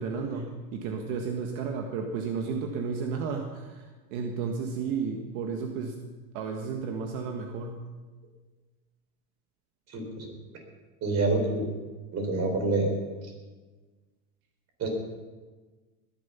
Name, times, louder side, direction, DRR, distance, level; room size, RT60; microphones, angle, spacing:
voice 1, 0.0-6.0 6.3-7.9, right 5 dB, 65° right, 3 dB, 1.7 m, -33 dB
voice 2, 9.9-10.3 11.0-11.7 12.1-12.9 14.8-14.9, right 3 dB, 35° right, 3 dB, 4.3 m, -27 dB
20.5 x 11.0 x 5.7 m, 1.3 s
supercardioid pair, 135°, 44 cm